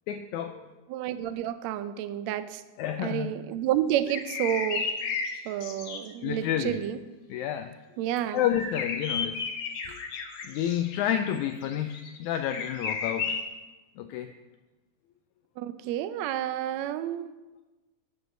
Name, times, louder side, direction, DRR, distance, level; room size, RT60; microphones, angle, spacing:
voice 1, 0.1-0.7 2.8-3.4 6.2-6.9 7.3-7.7 8.3-9.4 9.9-10.0 10.4-13.4 14.0-14.3, left 10 dB, 85° left, 6 dB, 1.7 m, -30 dB
voice 2, 0.9-2.6 3.0-4.8 5.5-7.0 8.0-8.4 15.6-17.3, right 11 dB, 85° right, 12 dB, 1.5 m, -30 dB
sound 1, 3.9-6.1 8.5-13.5, left 5 dB, 65° left, 2.4 m, -33 dB
9.1 x 8.0 x 6.7 m, 1.1 s
omnidirectional pair, 3.8 m